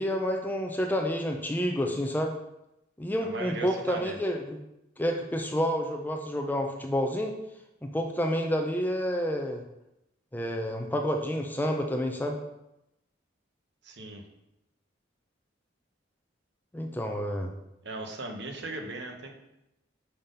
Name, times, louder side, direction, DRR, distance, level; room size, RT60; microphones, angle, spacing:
voice 1, 0.0-2.3 3.0-4.6 5.0-7.3 7.8-9.6 10.3-12.4 16.7-17.5, equal, 10° left, 2 dB, 0.5 m, -29 dB
voice 2, 3.2-4.2 13.8-14.2 17.8-19.3, right 2 dB, 60° right, 3 dB, 0.9 m, -38 dB
5.6 x 3.7 x 5.3 m, 0.88 s
head